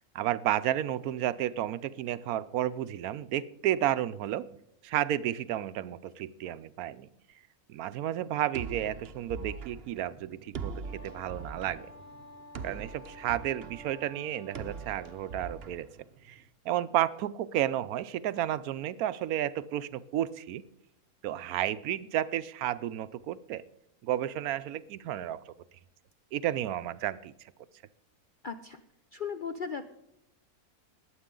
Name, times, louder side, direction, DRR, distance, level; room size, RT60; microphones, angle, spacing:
voice 1, 0.0-4.5 4.8-7.1 7.7-11.9 12.6-15.9 16.2-20.6 21.2-23.6 24.0-25.5 26.3-27.3, right 12 dB, 75° right, 15 dB, 1.0 m, -32 dB
sound 1, 8.5-16.5, right 5 dB, 50° right, 0.9 m, -42 dB
Wind instrument woodwind instrument, 10.8-15.7, equal, 30° left, 3.7 m, -51 dB
voice 2, 28.4-28.8 29.1-29.9, left 6 dB, 60° left, 8 dB, 0.5 m, -36 dB
21.0 x 8.0 x 3.8 m, 0.82 s
omnidirectional pair, 1.6 m